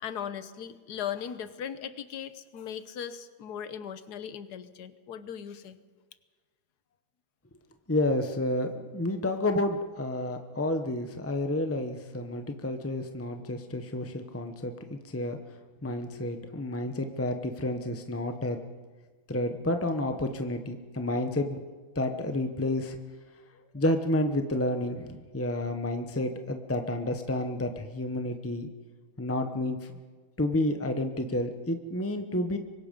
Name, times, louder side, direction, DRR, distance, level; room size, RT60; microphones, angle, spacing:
voice 1, 0.0-5.8 23.5-23.7, left 8 dB, 60° left, 12 dB, 1.4 m, -38 dB
voice 2, 7.9-15.4 15.8-18.6 19.3-21.6 21.9-23.0 23.7-28.7 29.2-29.9 30.4-32.6, left 1 dB, 15° left, 6 dB, 0.4 m, -30 dB
24.5 x 21.5 x 5.3 m, 1.5 s
omnidirectional pair, 2.2 m